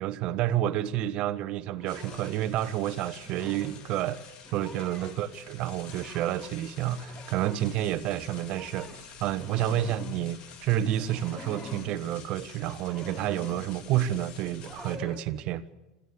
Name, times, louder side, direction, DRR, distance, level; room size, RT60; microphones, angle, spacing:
voice 1, 0.0-4.2 4.5-15.6, right 12 dB, 50° right, 1.1 m, -30 dB
sound 1, 1.7-2.4 3.2-3.9 4.3-5.3 5.9-6.5 6.9-7.7 8.3-10.3 10.9-12.1 12.8-13.7 14.6-15.2, left 1 dB, 20° left, 3.8 m, -44 dB
sound 2, 1.9-15.0, left 7 dB, 50° left, 3.0 m, -50 dB
26.0 x 15.0 x 6.9 m
hypercardioid pair, 80°, 2 cm